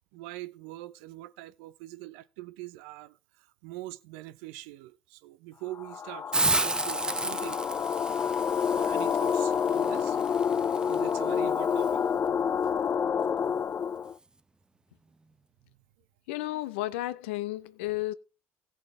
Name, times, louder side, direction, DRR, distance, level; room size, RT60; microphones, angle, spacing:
voice 1, 0.1-3.2 3.6-7.6 8.7-10.2 10.8-12.0 16.5-16.6, right 17 dB, 75° right, 0.6 m, -43 dB
sound 1, 5.7-14.1, left 7 dB, 40° left, 0.7 m, -28 dB
Hiss, 6.3-11.9, right 2 dB, 15° right, 0.6 m, -33 dB
voice 2, 16.3-18.1, left 16 dB, 75° left, 0.7 m, -32 dB
17.0 x 7.2 x 3.3 m
hypercardioid pair, 60°, 6 cm